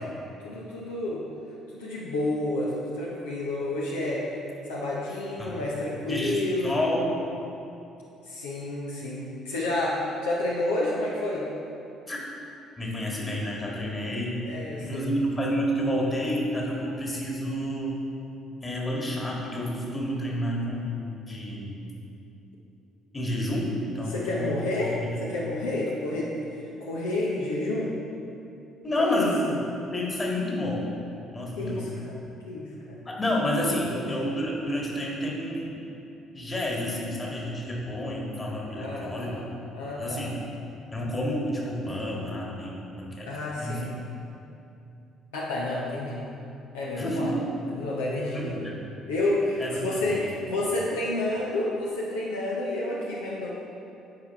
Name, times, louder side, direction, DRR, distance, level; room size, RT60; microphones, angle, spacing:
voice 1, 0.4-1.2 1.7-6.8 8.2-11.5 14.4-15.1 24.1-26.3 26.8-27.9 29.0-29.3 31.6-32.2 32.5-33.0 33.8-34.0 38.8-39.4 39.7-40.3 41.9-42.0 43.3-43.9 45.3-46.3 46.7-47.3 47.7-48.7 49.1-53.5, left 2 dB, 75° left, -4 dB, 0.8 m, -30 dB
voice 2, 6.1-7.2 12.1-12.2 12.8-14.3 14.8-18.0 18.6-21.8 23.1-24.6 25.0-25.3 28.8-29.5 29.9-31.0 31.3-31.9 33.0-35.8 36.3-39.4 40.0-40.4 40.9-43.3 43.6-43.9 47.0-47.3 48.3-48.7 49.6-50.4, equal, 25° left, -3 dB, 2.0 m, -30 dB
9.6 x 5.1 x 4.4 m, 2.7 s
figure-of-eight pair, 50°, 0 cm